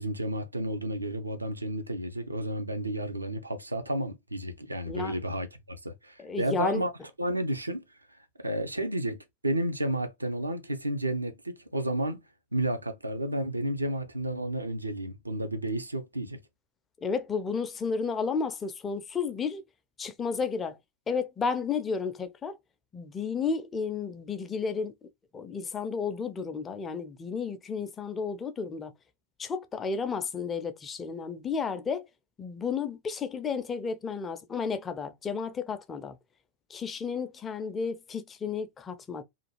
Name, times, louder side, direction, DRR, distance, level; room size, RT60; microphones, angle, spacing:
voice 1, 0.0-6.9 7.2-7.8 8.4-12.2 12.5-16.4, right 1 dB, 85° right, 0.4 m, -31 dB
voice 2, 6.2-6.8 17.0-19.6 20.0-20.8 21.1-22.6 22.9-28.9 29.4-32.1 32.4-36.2 36.7-39.2, left 5 dB, 20° left, 0.4 m, -32 dB
2.5 x 2.3 x 2.9 m
figure-of-eight pair, 90°, 0 cm